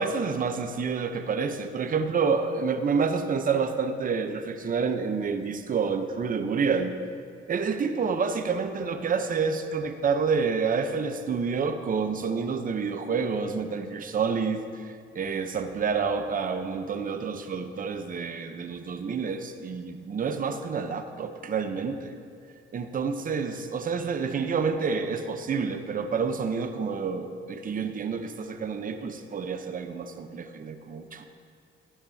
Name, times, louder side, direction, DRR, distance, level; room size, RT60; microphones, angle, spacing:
voice 1, 0.0-6.9 7.5-22.2 22.7-31.3, right 5 dB, 45° right, 8 dB, 0.8 m, -28 dB
14.5 x 10.5 x 2.8 m, 2.3 s
cardioid pair, 90°, 20 cm